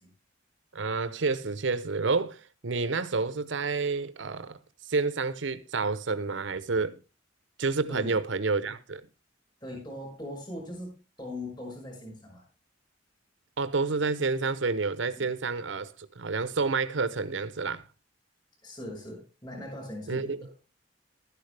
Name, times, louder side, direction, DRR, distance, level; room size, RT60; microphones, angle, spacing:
voice 1, 0.7-4.6 4.9-7.0 7.6-9.0 13.6-17.9 20.1-20.5, right 4 dB, 70° right, 0.8 m, -29 dB
voice 2, 9.6-12.4 15.1-15.3 18.6-20.5, left 1 dB, 25° left, 5.8 m, -40 dB
12.5 x 10.5 x 3.3 m
head